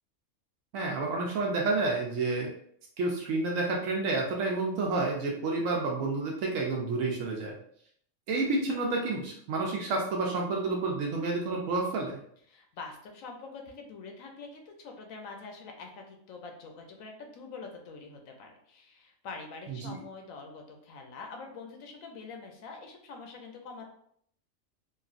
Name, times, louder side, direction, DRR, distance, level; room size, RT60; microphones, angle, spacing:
voice 1, 0.7-2.5 3.0-7.6 8.3-12.2 19.7-20.0, right 3 dB, 75° right, 0 dB, 0.9 m, -30 dB
voice 2, 12.5-23.9, left 4 dB, 80° left, 3 dB, 1.0 m, -45 dB
3.0 x 2.5 x 2.4 m, 0.65 s
omnidirectional pair, 1.4 m